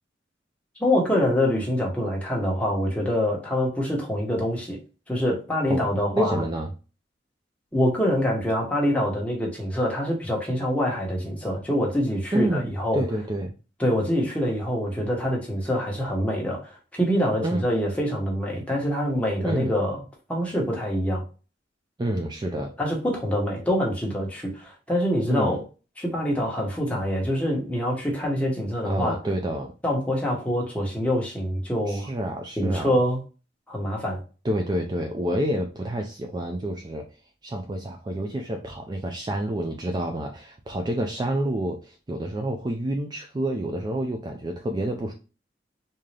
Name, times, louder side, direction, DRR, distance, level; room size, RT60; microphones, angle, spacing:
voice 1, 0.8-4.8 5.1-6.4 7.7-13.0 13.8-20.0 20.3-21.2 22.8-25.6 26.0-29.2 29.8-32.1 32.6-33.2 33.7-34.2, equal, 10° left, -2 dB, 1.1 m, -25 dB
voice 2, 6.1-6.7 12.3-13.5 17.4-17.7 19.4-19.7 22.0-22.7 25.3-25.6 28.8-29.7 31.9-32.9 34.4-37.1 37.4-45.1, right 1 dB, 25° right, 3 dB, 0.4 m, -28 dB
3.7 x 2.7 x 3.2 m, 0.33 s
head